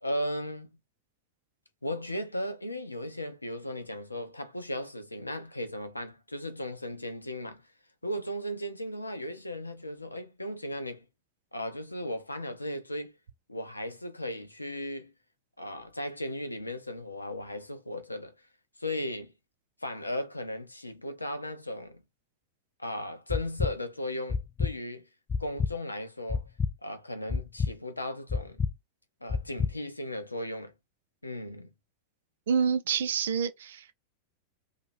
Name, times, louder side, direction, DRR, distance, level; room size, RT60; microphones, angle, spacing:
voice 1, 0.0-0.8 1.8-7.6 8.0-11.0 11.5-13.1 13.5-15.1 15.6-18.3 18.8-19.3 19.8-22.0 22.8-25.0 25.4-26.4 26.8-28.7 29.2-30.7 31.2-31.7, left 1 dB, 85° left, 0.6 m, -36 dB
sound 1, 23.3-23.7 24.3-24.7 25.3-25.7 26.3-26.7 27.3-27.7 28.3-28.7 29.3-29.7, left 5 dB, 20° left, 0.4 m, -28 dB
voice 2, 32.5-33.9, right 6 dB, 60° right, 0.5 m, -27 dB
2.9 x 2.5 x 4.2 m
figure-of-eight pair, 90°, 0 cm